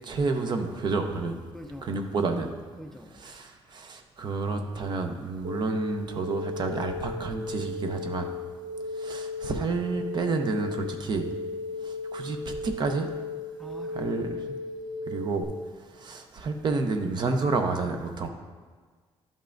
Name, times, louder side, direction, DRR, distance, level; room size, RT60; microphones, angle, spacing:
voice 1, 0.0-1.4 1.8-2.5 3.1-8.3 8.9-11.3 11.8-13.1 13.9-14.4 15.1-15.5 15.9-18.3, right 3 dB, 45° right, 5 dB, 0.6 m, -30 dB
voice 2, 1.5-2.0 2.7-3.4 13.6-14.2, equal, 5° left, 2 dB, 0.4 m, -44 dB
sound 1, 5.4-15.4, left 2 dB, 90° right, 1.0 m, -36 dB
11.5 x 5.4 x 2.5 m, 1.5 s
cardioid pair, 175°, 11 cm